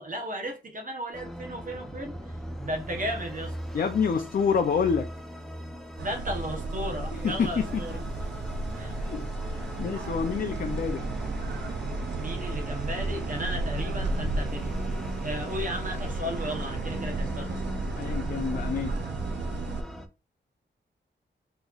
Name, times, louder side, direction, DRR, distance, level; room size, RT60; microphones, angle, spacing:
voice 1, 0.0-2.4 2.6-3.6 6.0-8.0 8.7-9.0 12.2-14.8 15.2-17.6, equal, 45° right, 0.8 m, -35 dB
sound 1, 1.1-20.1, equal, ahead, 0.5 m, -40 dB
voice 2, 3.7-5.1 7.1-7.7 8.0-8.1 8.9-11.0 18.0-19.0, left 6 dB, 50° left, 0.4 m, -28 dB
sound 2, 6.0-19.8, right 2 dB, 65° right, 0.5 m, -33 dB
4.0 x 3.0 x 2.3 m
wide cardioid pair, 155°, 19 cm